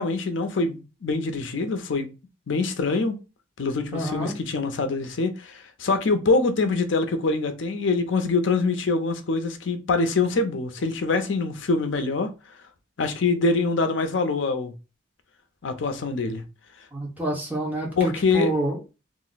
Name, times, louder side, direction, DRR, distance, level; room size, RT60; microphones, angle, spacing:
voice 1, 0.0-2.1 2.5-3.2 3.6-12.3 13.0-14.7 15.6-16.4 18.0-18.5, left 3 dB, 80° left, 0.6 m, -24 dB
voice 2, 3.9-4.3 16.9-18.9, right 1 dB, 10° right, 0.9 m, -28 dB
2.5 x 2.0 x 3.9 m
head